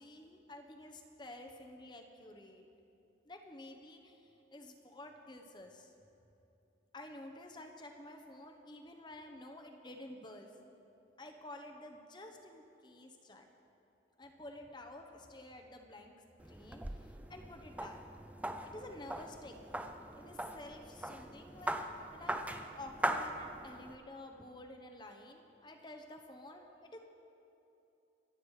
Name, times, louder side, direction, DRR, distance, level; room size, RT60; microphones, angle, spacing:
voice 1, 0.0-2.7 3.3-5.9 6.9-10.5 11.2-13.5 14.2-16.1 16.4-18.0 18.6-19.5 20.1-21.8 22.1-27.0, left 1 dB, 25° left, 3 dB, 1.0 m, -51 dB
sound 1, 16.4-24.0, right 1 dB, 10° right, 0.5 m, -41 dB
24.5 x 8.2 x 4.9 m, 2.9 s
head